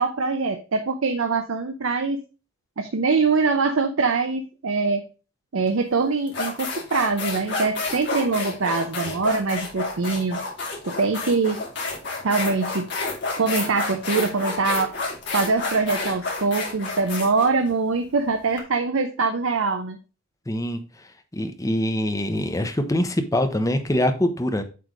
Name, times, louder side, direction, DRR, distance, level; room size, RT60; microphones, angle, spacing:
voice 1, 0.0-2.2 2.8-5.0 5.5-10.4 10.9-11.6 12.2-12.9 13.4-14.9 15.3-20.0, right 4 dB, 80° right, 0.7 m, -23 dB
sound 1, 5.7-5.8 6.3-18.6, left 3 dB, 55° left, 2.5 m, -30 dB
voice 2, 20.5-20.8 21.3-24.6, left 1 dB, 15° left, 0.7 m, -24 dB
7.8 x 3.2 x 5.0 m
head